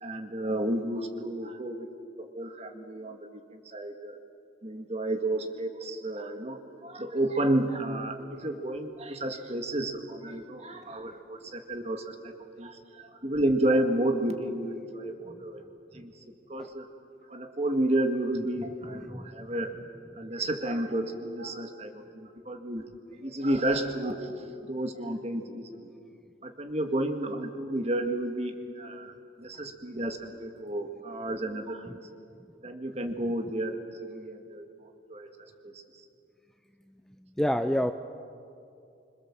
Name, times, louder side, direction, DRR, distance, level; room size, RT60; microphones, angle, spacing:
voice 1, 0.0-1.9 2.2-3.2 3.5-4.2 4.6-15.6 15.9-16.1 16.5-16.9 17.3-19.7 20.1-22.9 23.2-24.3 24.6-25.9 26.4-29.1 29.4-32.0 32.6-33.8 34.1-34.7 35.1-35.3 35.6-35.8, right 1 dB, 35° right, 5 dB, 2.0 m, -31 dB
voice 2, 37.4-37.9, equal, 5° left, 8 dB, 0.5 m, -28 dB
26.0 x 26.0 x 7.4 m, 2.5 s
head